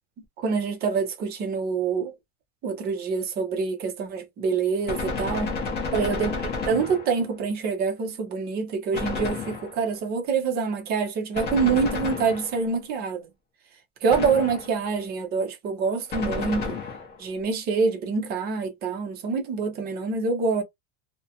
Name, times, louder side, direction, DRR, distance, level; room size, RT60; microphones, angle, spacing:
voice 1, 0.4-2.1 2.6-5.5 5.9-6.3 6.7-13.3 14.0-16.8 17.2-20.6, right 5 dB, 25° right, 0.5 m, -26 dB
Gunshot gunfire, 4.9-7.4 8.9-10.0 11.3-12.8 14.1-14.9 16.1-17.3, left 4 dB, 25° left, 0.5 m, -31 dB
2.3 x 2.1 x 2.7 m
supercardioid pair, 165°, 42 cm